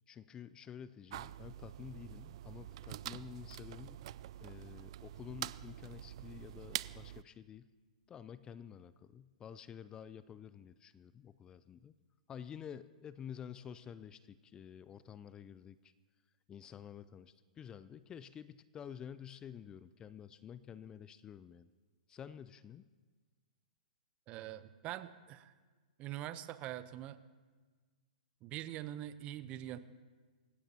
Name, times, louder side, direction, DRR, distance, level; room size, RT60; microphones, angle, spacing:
voice 1, 0.0-4.0 4.4-7.7 8.1-11.9 12.3-15.8 16.5-21.7 22.1-22.9, left 8 dB, 20° left, 16 dB, 0.4 m, -50 dB
sound 1, 1.1-7.2, right 13 dB, 50° right, 0.3 m, -46 dB
voice 2, 24.3-25.5 26.0-27.2 28.4-29.8, right 13 dB, 30° right, 13 dB, 0.8 m, -43 dB
26.5 x 16.0 x 2.9 m, 1.4 s
figure-of-eight pair, 110°, 4 cm